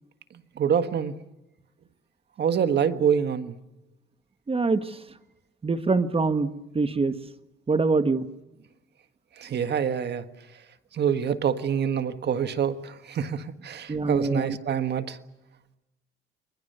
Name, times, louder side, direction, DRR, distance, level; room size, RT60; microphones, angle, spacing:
voice 1, 0.6-1.1 2.4-3.5 9.4-10.2 11.0-15.2, right 8 dB, 60° right, 10 dB, 1.5 m, -26 dB
voice 2, 4.5-4.8 5.6-6.5 6.7-7.1 7.7-8.2 13.9-14.6, right 3 dB, 30° right, 11 dB, 1.4 m, -24 dB
29.5 x 22.5 x 6.8 m, 0.98 s
cardioid pair, 90°, 20 cm